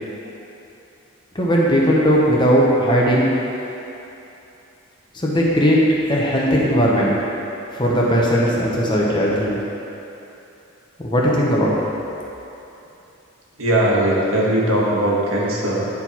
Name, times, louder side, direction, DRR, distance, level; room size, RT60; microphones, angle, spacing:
voice 1, 1.3-3.3 5.1-5.8 6.1-7.2 7.7-9.6 11.0-11.8, equal, 20° left, -4 dB, 0.9 m, -18 dB
voice 2, 13.6-15.9, right 1 dB, 80° right, -5 dB, 1.5 m, -19 dB
9.8 x 4.6 x 4.3 m, 2.9 s
head